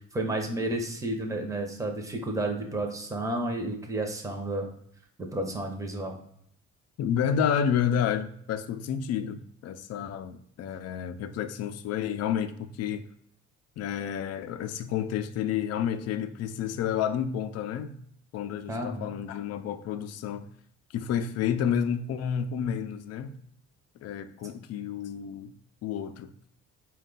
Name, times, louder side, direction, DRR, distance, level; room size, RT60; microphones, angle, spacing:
voice 1, 0.1-4.7 5.2-6.2 18.7-19.1, right 1 dB, 10° right, 0.7 m, -31 dB
voice 2, 7.0-13.0 13.8-18.0 18.3-20.5 20.9-23.3 24.0-25.5 25.8-26.3, left 8 dB, 55° left, 0.4 m, -30 dB
4.3 x 2.3 x 3.8 m
cardioid pair, 90°, 30 cm